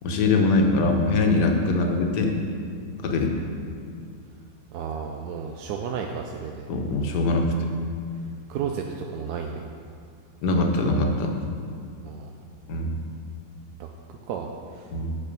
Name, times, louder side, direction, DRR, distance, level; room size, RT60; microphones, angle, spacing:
voice 1, 0.0-2.4 3.0-3.3 6.7-7.7 10.4-11.3 12.7-13.0 14.9-15.1, left 2 dB, 70° left, 3 dB, 1.5 m, -22 dB
voice 2, 4.7-6.7 8.5-9.6 12.0-12.3 13.8-13.9 14.3-14.9, right 6 dB, 70° right, 2 dB, 1.0 m, -33 dB
8.5 x 6.5 x 5.3 m, 2.2 s
omnidirectional pair, 1.9 m